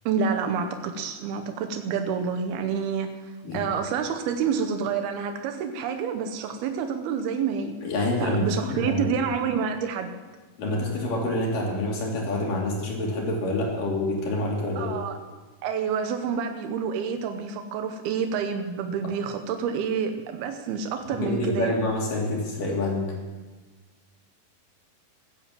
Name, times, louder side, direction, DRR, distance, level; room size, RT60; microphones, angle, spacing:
voice 1, 0.1-7.7 8.2-10.1 14.8-15.2 15.6-21.7, right 6 dB, 90° right, 6 dB, 2.9 m, -28 dB
voice 2, 7.8-8.4 8.7-9.0 10.6-14.9 21.1-23.1, left 2 dB, 60° left, -2 dB, 4.5 m, -27 dB
16.0 x 10.5 x 7.4 m, 1.3 s
omnidirectional pair, 4.3 m